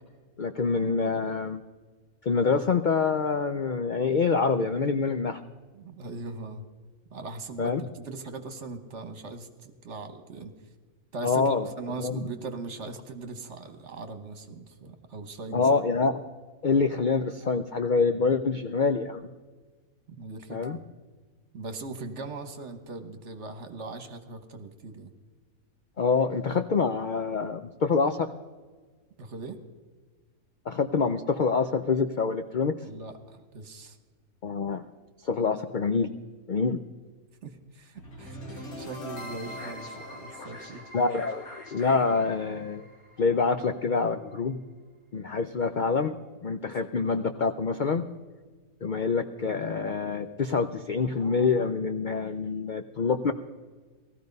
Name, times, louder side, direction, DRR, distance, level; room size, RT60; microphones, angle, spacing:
voice 1, 0.4-1.6 2.2-5.4 7.6-7.8 11.2-11.7 12.0-12.2 15.5-16.2 16.6-19.2 20.5-20.8 26.0-28.3 30.7-32.7 34.4-34.8 35.2-36.1 36.5-36.8 40.9-42.8 43.2-44.6 45.1-46.2 46.4-48.0 48.8-53.3, left 4 dB, 55° left, 9 dB, 0.5 m, -26 dB
voice 2, 5.7-6.6 7.1-10.5 11.1-15.7 18.2-18.3 20.1-20.8 21.5-25.1 29.2-29.6 32.9-34.0 37.4-40.9, right 3 dB, 55° right, 8 dB, 1.5 m, -40 dB
sound 1, 38.0-44.0, equal, 80° left, 2.5 m, -42 dB
17.5 x 13.5 x 5.3 m, 1.4 s
omnidirectional pair, 1.5 m